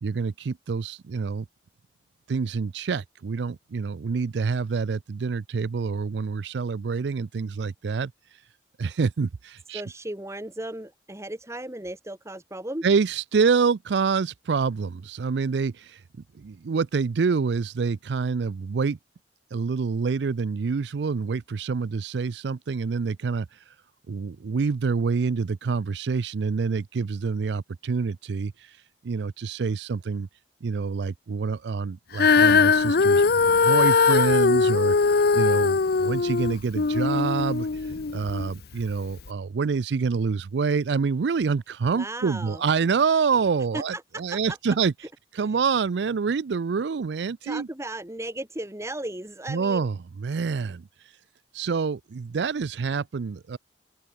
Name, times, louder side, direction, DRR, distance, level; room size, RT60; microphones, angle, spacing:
voice 1, 0.0-1.5 2.3-8.1 8.8-9.8 12.8-16.0 16.3-19.0 19.5-23.6 24.1-28.8 29.0-30.3 30.6-35.0 35.3-44.9 45.3-47.7 49.5-49.9 50.2-50.8 51.5-53.6, right 5 dB, 75° right, 0.4 m, -27 dB
voice 2, 9.7-12.9 41.9-42.6 43.7-44.6 45.4-45.6 47.4-49.9, right 1 dB, 15° right, 2.2 m, -36 dB
Female singing, 32.1-38.5 39.2-39.3, left 4 dB, 60° left, 0.7 m, -20 dB
open air
head